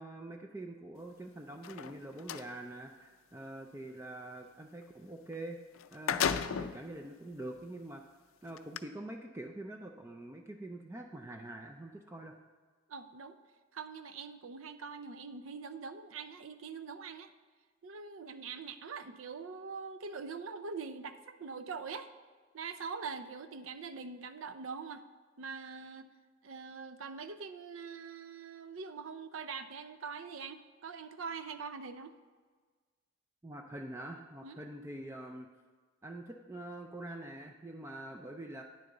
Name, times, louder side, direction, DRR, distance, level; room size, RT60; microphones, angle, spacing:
voice 1, 0.0-5.6 5.9-8.0 8.4-12.3 33.4-35.5 36.0-38.6, right 1 dB, 15° right, 2 dB, 0.4 m, -45 dB
sound 1, 1.5-2.5 5.3-5.4 5.7-6.8 7.5-7.6 8.6-8.8, left 7 dB, 75° left, 0.4 m, -33 dB
voice 2, 12.9-13.4 13.7-17.3 17.8-22.1 22.5-25.1 25.4-26.1 26.4-32.2 34.4-34.6, right 5 dB, 75° right, 11 dB, 0.5 m, -43 dB
9.6 x 6.6 x 3.9 m, 1.5 s
head